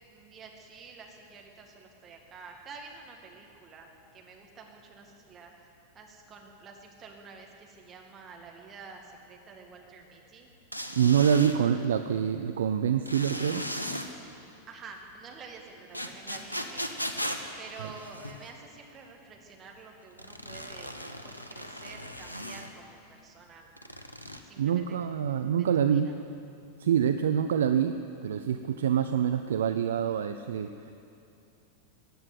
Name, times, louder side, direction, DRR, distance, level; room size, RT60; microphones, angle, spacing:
voice 1, 0.1-5.5 5.9-10.5 14.7-17.3 17.6-20.9 21.2-23.7 24.4-25.0 25.6-26.1, right 4 dB, 25° right, 1 dB, 2.2 m, -49 dB
sound 1, 10.7-11.6 13.1-14.1 15.9-18.5 20.2-22.7 23.8-24.4, equal, 85° left, 1.0 m, -37 dB
voice 2, 11.0-13.7 24.6-26.1 26.8-30.9, right 8 dB, 60° right, 9 dB, 0.5 m, -26 dB
16.0 x 9.6 x 8.0 m, 2.6 s
figure-of-eight pair, 90°, 0 cm